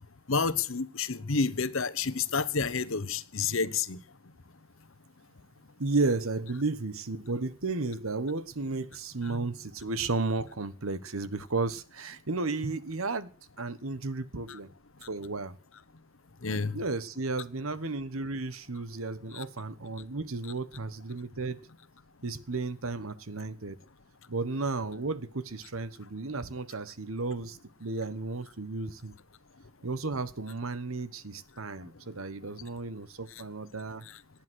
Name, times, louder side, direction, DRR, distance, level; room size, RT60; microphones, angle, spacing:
voice 1, 0.3-4.0 14.5-14.6 16.4-16.8 19.3-19.4, left 4 dB, 65° left, 1.1 m, -29 dB
voice 2, 5.8-13.3 13.6-14.7 15.1-15.5 16.7-21.6 22.2-23.8 24.3-29.1 29.8-34.0, right 3 dB, 75° right, 1.2 m, -33 dB
19.0 x 10.5 x 6.3 m
head